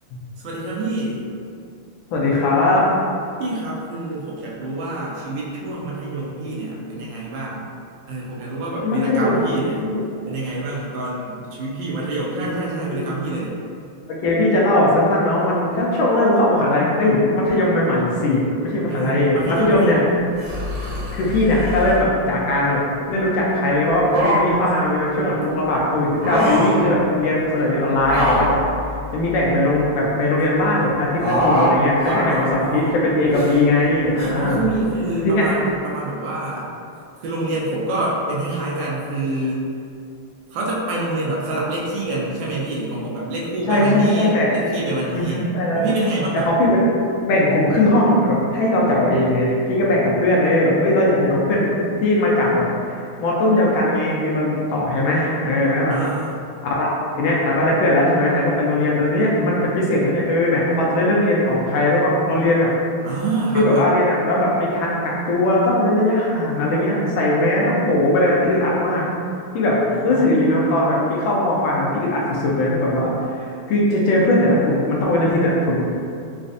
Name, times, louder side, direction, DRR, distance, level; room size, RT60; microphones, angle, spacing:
voice 1, 0.4-1.2 3.4-7.6 8.1-9.8 10.3-13.5 18.9-20.0 32.2-33.0 34.3-36.7 37.2-39.6 40.5-45.4 45.7-46.5 55.9-56.4 63.0-63.9 69.9-70.4, right 2 dB, 70° right, -5 dB, 1.2 m, -26 dB
voice 2, 2.1-2.9 8.8-9.4 9.8-10.0 12.3-12.6 12.9-13.2 14.1-20.0 21.1-22.8 23.1-28.6 29.1-34.7 35.2-35.5 43.7-44.5 45.1-45.8 46.5-46.9 47.2-56.0 56.6-56.9 57.2-62.7 63.5-69.0 69.5-69.8 70.0-75.8, left 1 dB, 75° left, -4 dB, 1.4 m, -19 dB
sound 1, 20.4-22.0 23.9-24.7 26.0-26.8 28.0-29.8 31.2-31.7 32.0-32.5 33.2-33.6 34.2-34.3, equal, 55° right, 1.4 m, -23 dB
4.1 x 2.5 x 2.5 m, 2.5 s
omnidirectional pair, 2.3 m